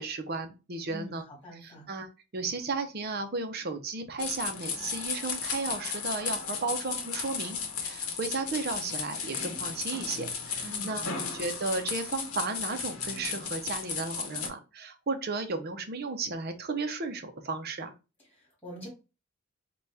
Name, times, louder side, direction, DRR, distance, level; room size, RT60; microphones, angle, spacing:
voice 1, 0.0-1.2 1.6-11.1 11.3-17.9, right 3 dB, 45° right, 7 dB, 0.6 m, -34 dB
voice 2, 0.9-1.9 10.6-11.2 18.3-18.9, equal, 10° left, -4 dB, 1.8 m, -44 dB
sound 1, 4.2-14.5, left 6 dB, 85° left, 0.9 m, -35 dB
4.0 x 2.3 x 3.2 m, 0.30 s
head